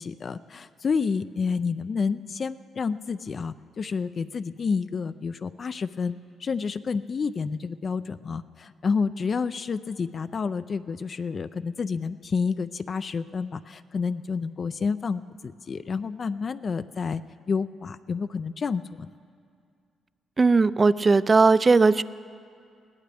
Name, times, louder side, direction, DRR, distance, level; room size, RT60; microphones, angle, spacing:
voice 1, 0.0-17.2 17.5-19.1, left 5 dB, 45° left, 12 dB, 0.4 m, -29 dB
voice 2, 20.4-22.0, right 4 dB, 30° right, 17 dB, 0.3 m, -18 dB
21.5 x 17.0 x 3.4 m, 2.3 s
cardioid pair, 90°, 0 cm